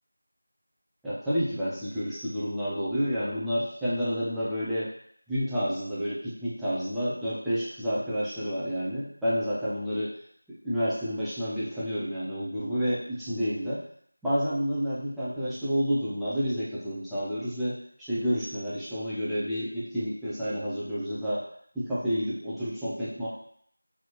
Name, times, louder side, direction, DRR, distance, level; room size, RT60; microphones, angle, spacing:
voice 1, 1.0-4.9 5.3-10.1 10.5-13.8 14.2-21.4 21.7-23.3, equal, ahead, -13 dB, 0.3 m, -30 dB
3.9 x 3.0 x 4.4 m, 0.63 s
figure-of-eight pair, 180°, 0 cm